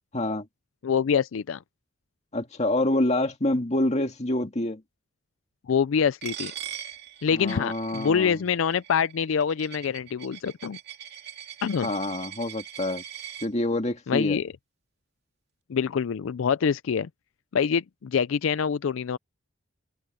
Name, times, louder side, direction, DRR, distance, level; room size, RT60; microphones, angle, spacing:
voice 1, 0.1-0.5 2.3-4.8 7.3-8.4 11.8-13.0 13.4-14.4, left 1 dB, 35° left, 2.1 m, -27 dB
voice 2, 0.8-1.6 5.7-6.5 7.2-10.8 11.6-11.9 14.1-14.5 15.7-17.1 17.5-19.2, left 6 dB, 80° left, 0.4 m, -25 dB
Coin (dropping), 6.2-13.5, right 10 dB, 55° right, 3.0 m, -41 dB
head